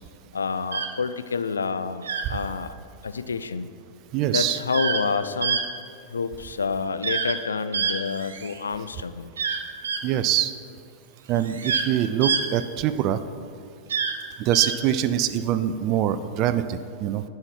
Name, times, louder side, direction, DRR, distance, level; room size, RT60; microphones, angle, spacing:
voice 1, 0.3-2.7 3.0-3.7 4.2-5.6 6.1-9.3, left 5 dB, 85° left, 12 dB, 0.4 m, -28 dB
sound 1, 0.7-0.9 2.0-2.3 4.7-5.0 5.4-5.6 7.0-7.4 7.7-8.6 9.4-10.0 11.4-11.9 12.2-12.4 13.9-14.1 14.5-14.7, right 6 dB, 80° right, 0.7 m, -26 dB
voice 2, 4.1-4.6 10.0-10.5 11.3-13.2 14.4-17.2, right 11 dB, 45° right, 12 dB, 0.4 m, -24 dB
11.0 x 5.7 x 4.4 m, 2.4 s
hypercardioid pair, 95°, 0 cm